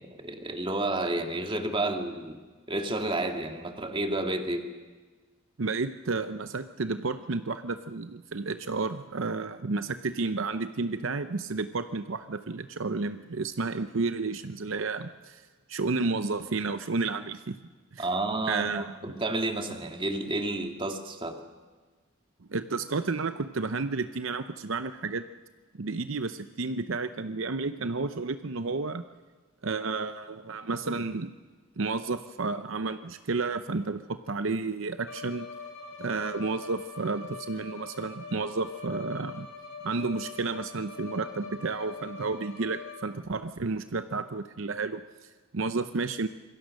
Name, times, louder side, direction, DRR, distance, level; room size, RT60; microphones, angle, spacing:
voice 1, 0.0-2.4 2.7-4.7 18.0-21.4, right 2 dB, 25° right, 4 dB, 2.1 m, -31 dB
voice 2, 5.6-15.4 15.7-17.6 17.9-18.1 18.5-18.9 22.5-25.2 25.8-29.0 29.6-31.3 31.8-35.5 36.0-39.5 39.8-46.3, right 3 dB, 70° right, 10 dB, 0.7 m, -31 dB
Bowed string instrument, 35.0-43.3, left 4 dB, 80° left, 4.4 m, -43 dB
26.5 x 22.0 x 6.5 m, 1.4 s
head